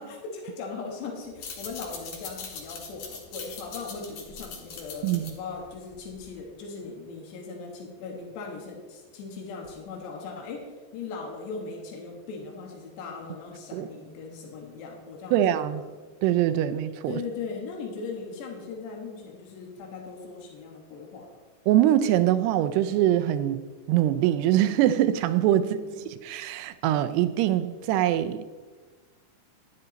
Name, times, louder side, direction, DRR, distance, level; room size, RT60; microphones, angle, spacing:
voice 1, 0.0-15.8 17.1-21.3 25.6-26.0, left 4 dB, 90° left, 3.7 m, -39 dB
sound 1, 1.3-6.4, left 5 dB, 55° left, 2.3 m, -41 dB
voice 2, 5.0-5.3 13.7-13.9 15.3-15.8 16.2-17.2 21.7-25.8 26.2-28.5, right 12 dB, 85° right, 2.6 m, -23 dB
12.5 x 10.5 x 4.0 m
omnidirectional pair, 4.8 m